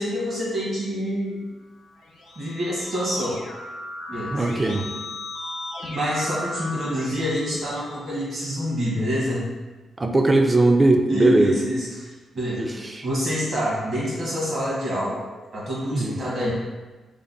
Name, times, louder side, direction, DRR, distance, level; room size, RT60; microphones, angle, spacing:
voice 1, 0.0-1.4 2.3-3.4 4.1-4.4 5.8-9.4 11.1-12.7 13.0-15.2 15.5-16.5, equal, 50° right, -6 dB, 1.3 m, -27 dB
Keyboard (musical), 1.9-8.5, left 2 dB, 90° left, 0.8 m, -36 dB
voice 2, 4.3-4.9 10.0-11.5 12.6-13.1 15.9-16.2, right 2 dB, 20° right, 4 dB, 0.3 m, -19 dB
3.3 x 2.1 x 3.9 m, 1.3 s
cardioid pair, 120°, 0 cm